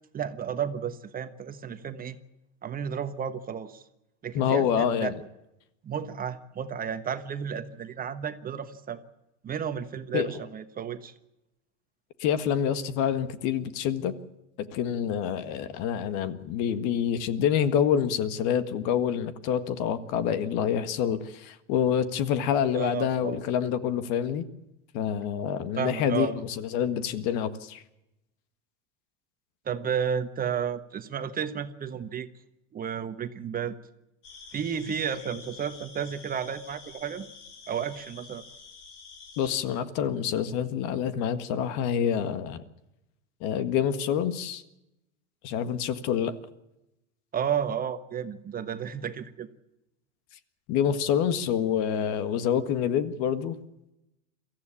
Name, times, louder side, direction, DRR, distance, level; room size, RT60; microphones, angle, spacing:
voice 1, 0.1-2.2 2.6-3.8 4.2-5.1 5.8-9.0 9.4-11.1 22.7-23.4 25.8-26.4 29.6-32.3 32.7-33.7 34.5-37.3 37.7-38.4 47.3-49.5, right 8 dB, 25° right, 10 dB, 1.2 m, -32 dB
voice 2, 4.3-5.1 10.1-10.3 12.2-14.1 14.6-24.4 24.9-27.8 39.4-42.6 43.4-44.6 45.4-46.4 50.7-53.6, left 8 dB, 55° left, 12 dB, 1.7 m, -27 dB
sound 1, 34.2-39.6, left 5 dB, 75° left, 5.6 m, -48 dB
23.0 x 15.0 x 8.6 m, 0.92 s
hypercardioid pair, 115°, 36 cm